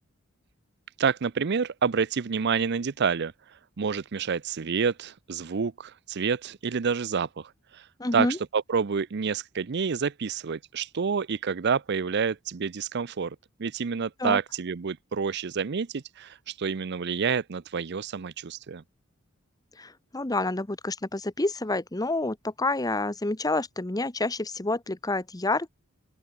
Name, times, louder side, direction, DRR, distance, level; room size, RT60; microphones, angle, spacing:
voice 1, 1.0-3.3 3.8-7.8 8.1-8.3 8.5-18.8, right 6 dB, 55° right, 0.5 m, -28 dB
voice 2, 8.0-8.4 14.2-14.4 19.8-25.7, left 2 dB, 20° left, 1.0 m, -28 dB
open air
head